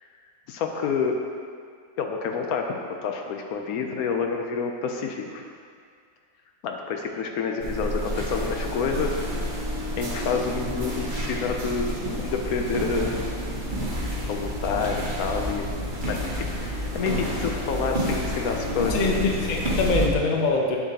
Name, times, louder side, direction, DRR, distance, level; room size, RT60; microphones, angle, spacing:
voice 1, 0.5-1.2 2.0-2.7 3.0-5.4 6.6-9.6 10.0-13.2 14.3-15.6 16.1-19.3, left 5 dB, 70° left, 3 dB, 1.0 m, -28 dB
sound 1, 7.6-20.1, equal, 35° right, 0.9 m, -29 dB
voice 2, 18.9-20.8, left 3 dB, 50° left, 0 dB, 0.5 m, -23 dB
7.4 x 6.8 x 2.8 m, 2.1 s
omnidirectional pair, 1.7 m